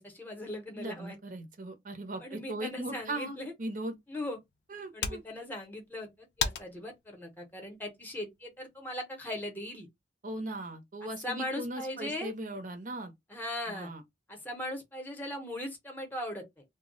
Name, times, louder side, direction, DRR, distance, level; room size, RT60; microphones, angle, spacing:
voice 1, 0.0-1.2 2.2-3.5 4.1-4.4 4.9-9.9 11.0-12.3 13.3-13.9 14.3-16.6, left 1 dB, 10° left, 0.7 m, -39 dB
voice 2, 0.8-4.0 4.7-5.2 10.2-13.1 13.7-14.0, right 1 dB, 50° right, 0.6 m, -38 dB
sound 1, 3.9-8.9, left 6 dB, 75° left, 0.5 m, -40 dB
2.2 x 2.0 x 3.7 m
head